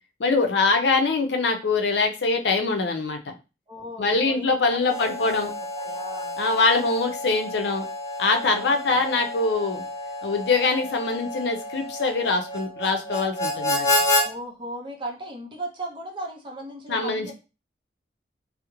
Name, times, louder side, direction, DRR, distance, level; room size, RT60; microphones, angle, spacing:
voice 1, 0.2-3.3 4.0-5.5 6.4-7.8 8.2-9.8 10.2-13.9 16.9-17.3, left 3 dB, 70° left, 5 dB, 0.5 m, -23 dB
voice 2, 3.7-5.5 5.8-6.4 8.4-9.0 14.2-17.3, right 1 dB, 30° right, 1 dB, 0.5 m, -37 dB
Harmonica, 4.7-14.3, left 1 dB, 20° left, 0.6 m, -29 dB
2.3 x 2.0 x 2.9 m, 0.30 s
head